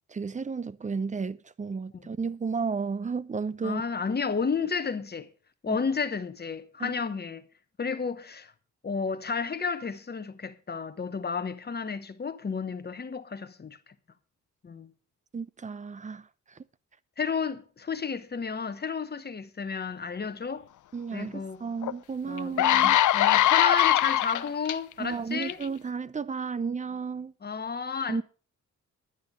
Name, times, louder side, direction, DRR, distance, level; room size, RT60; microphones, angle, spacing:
voice 1, 0.1-3.8 5.7-5.8 6.8-6.9 15.3-16.3 16.5-16.6 20.9-23.0 25.0-27.3 28.1-28.2, right 5 dB, 25° right, 0.6 m, -33 dB
voice 2, 3.6-5.3 5.6-7.5 7.8-8.5 8.8-13.8 14.6-14.9 17.2-20.7 21.1-21.6 22.2-25.6 27.4-28.2, left 5 dB, 35° left, 1.1 m, -32 dB
sound 1, 21.8-21.9 22.4-24.7 25.4-25.6, left 13 dB, 80° left, 0.6 m, -21 dB
11.0 x 9.4 x 5.1 m
cardioid pair, 100°, 30 cm